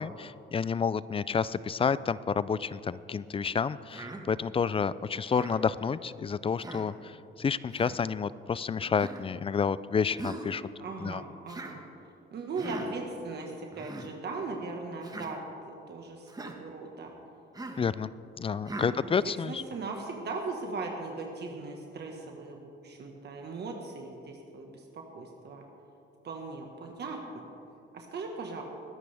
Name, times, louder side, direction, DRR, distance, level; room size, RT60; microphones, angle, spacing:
voice 1, 0.0-7.1 7.4-10.6 11.0-11.2 17.8-18.1 18.4-19.6, left 6 dB, 30° left, 18 dB, 0.3 m, -30 dB
Human voice, 3.9-4.2 5.3-5.6 6.6-6.9 7.7-7.9 9.0-9.2 10.2-10.5 11.5-11.8 12.6-12.9 13.7-14.1 15.0-15.3 16.3-16.6 17.5-17.9 18.7-18.9, right 2 dB, 20° right, 1.4 m, -40 dB
voice 2, 10.8-11.8 12.3-17.1 18.9-25.6 26.2-27.4 27.9-28.6, right 3 dB, 55° right, 2 dB, 1.5 m, -39 dB
21.0 x 11.0 x 3.4 m, 2.7 s
cardioid pair, 90°, 20 cm